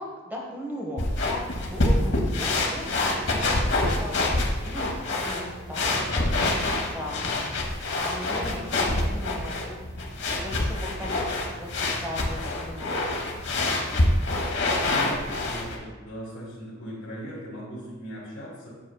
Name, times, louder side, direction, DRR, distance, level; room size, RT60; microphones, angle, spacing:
voice 1, 0.0-4.2 4.6-7.6 7.8-9.8 10.1-13.2, equal, 10° right, -3 dB, 1.0 m, -38 dB
sound 1, 1.0-15.8, left 2 dB, 60° left, 0.9 m, -26 dB
voice 2, 14.9-18.7, equal, 75° left, -8 dB, 1.6 m, -38 dB
7.6 x 6.3 x 2.3 m, 1.2 s
head